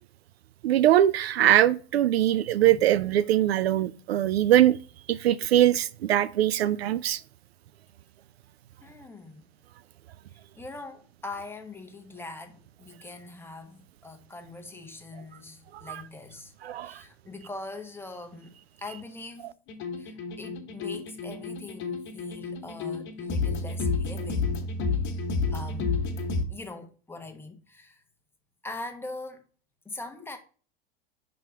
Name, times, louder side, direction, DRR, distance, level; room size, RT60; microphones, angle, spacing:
voice 1, 0.6-4.8 5.1-7.2 15.9-16.0 16.6-17.0, right 12 dB, 70° right, 0.5 m, -22 dB
voice 2, 8.8-9.4 10.3-16.5 16.8-19.5 20.0-24.5 24.9-25.0 25.5-25.9 26.5-28.0 28.6-29.5 29.8-30.4, left 2 dB, 5° left, 1.0 m, -42 dB
sound 1, 19.7-26.4, left 4 dB, 40° left, 1.4 m, -30 dB
5.7 x 3.8 x 4.4 m
hypercardioid pair, 90°, 32 cm